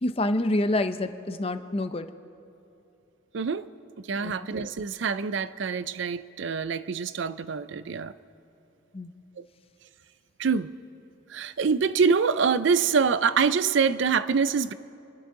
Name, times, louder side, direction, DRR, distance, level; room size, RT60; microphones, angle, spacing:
voice 1, 0.0-2.1 4.2-4.3 8.9-9.1, left 1 dB, 30° left, 0.6 m, -27 dB
voice 2, 3.3-3.7 4.1-8.1 9.4-9.5 10.4-10.7 11.3-14.7, right 5 dB, 65° right, 0.4 m, -25 dB
29.5 x 11.5 x 3.8 m
head